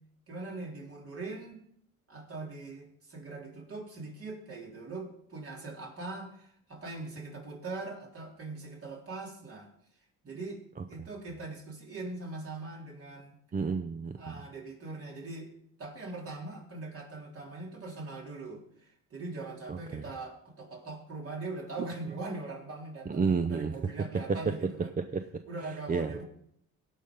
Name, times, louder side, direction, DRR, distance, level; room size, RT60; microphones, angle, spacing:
voice 1, 0.3-1.6 2.1-9.7 10.2-10.6 10.9-13.4 14.2-15.5 15.8-24.9 25.5-26.2, right 3 dB, 50° right, -1 dB, 3.8 m, -41 dB
voice 2, 13.5-14.4 19.7-20.0 23.1-23.8 25.0-25.4 25.9-26.2, right 5 dB, 30° right, 8 dB, 0.7 m, -31 dB
16.5 x 5.7 x 5.3 m, 0.72 s
cardioid pair, 90°, 30 cm